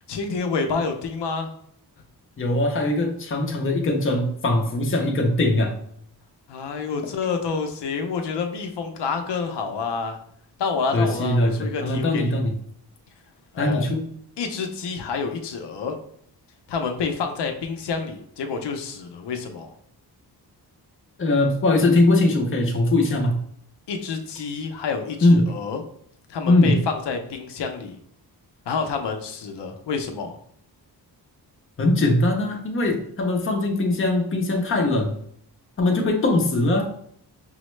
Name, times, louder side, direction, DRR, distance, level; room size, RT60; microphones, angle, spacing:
voice 1, 0.1-1.5 6.5-10.2 10.6-12.4 13.5-13.9 14.4-16.0 16.7-19.7 23.9-25.8 26.3-28.0 28.7-30.4, left 5 dB, 90° left, 5 dB, 0.6 m, -28 dB
voice 2, 2.4-5.7 10.9-12.5 13.6-14.1 21.2-23.4 25.2-25.5 26.5-26.8 31.8-35.1 35.8-36.9, left 2 dB, 30° left, 2 dB, 0.6 m, -21 dB
5.4 x 2.1 x 3.1 m, 0.65 s
wide cardioid pair, 170°, 40 cm